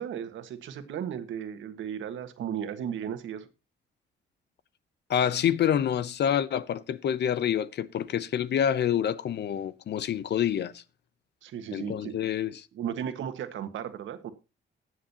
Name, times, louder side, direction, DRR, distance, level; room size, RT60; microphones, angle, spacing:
voice 1, 0.0-3.5 11.4-12.2 12.7-14.3, right 9 dB, 75° right, 1.6 m, -35 dB
voice 2, 5.1-10.8 11.7-12.7, left 9 dB, 60° left, 0.7 m, -27 dB
20.0 x 7.5 x 2.9 m
cardioid pair, 90°, 20 cm